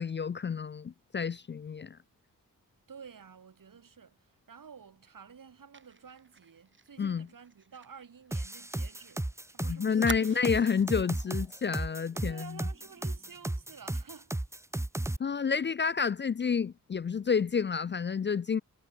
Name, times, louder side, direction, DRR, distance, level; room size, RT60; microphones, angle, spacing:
voice 1, 0.0-2.0 7.0-7.3 9.6-12.6 15.2-18.6, left 6 dB, 30° left, 0.4 m, -29 dB
voice 2, 2.9-10.3 12.3-14.4, right 6 dB, 65° right, 2.5 m, -51 dB
Fire, 5.7-9.2 9.4-9.5 10.0-11.0 11.4-11.6 11.9-12.2, right 4 dB, 35° right, 1.2 m, -45 dB
sound 1, 8.3-15.2, right 1 dB, 10° right, 0.7 m, -34 dB
cardioid pair, 45°, 35 cm